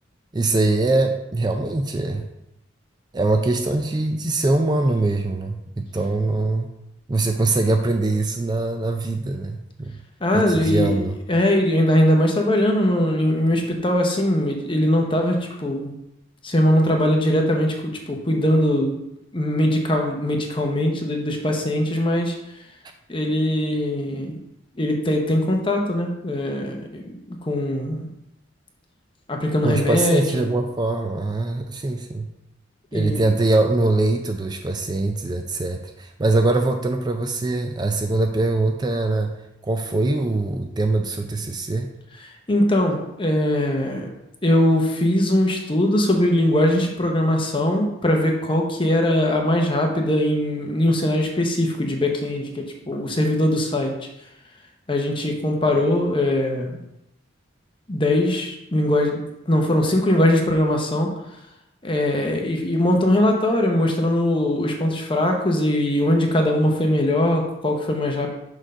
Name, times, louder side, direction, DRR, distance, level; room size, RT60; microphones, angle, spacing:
voice 1, 0.3-2.3 3.1-6.7 7.1-9.9 10.3-11.2 29.6-32.3 32.9-39.4 39.6-41.9, right 2 dB, 20° right, 5 dB, 0.4 m, -22 dB
voice 2, 10.2-11.0 11.3-15.9 16.4-19.0 19.3-22.3 23.1-24.4 24.8-28.1 29.3-30.4 32.9-33.3 42.5-44.1 44.4-53.9 54.9-56.8 57.9-61.1 61.8-68.3, left 1 dB, 25° left, 2 dB, 0.9 m, -21 dB
6.3 x 3.8 x 5.5 m, 0.86 s
head